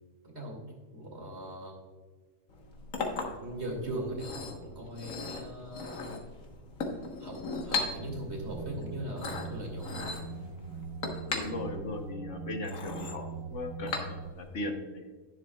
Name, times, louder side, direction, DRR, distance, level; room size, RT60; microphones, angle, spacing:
voice 1, 0.2-0.6 0.9-1.7 3.4-6.1 7.2-7.4 7.6-10.1, right 1 dB, 55° right, 0 dB, 2.6 m, -39 dB
Chink clink, 2.5-14.5, left 3 dB, 80° left, 1.7 m, -38 dB
sound 1, 8.0-14.3, right 5 dB, 80° right, 1.2 m, -41 dB
voice 2, 11.3-13.2 13.5-15.1, left 2 dB, 65° left, 4 dB, 1.3 m, -38 dB
11.0 x 10.5 x 2.3 m, 1.4 s
omnidirectional pair, 1.4 m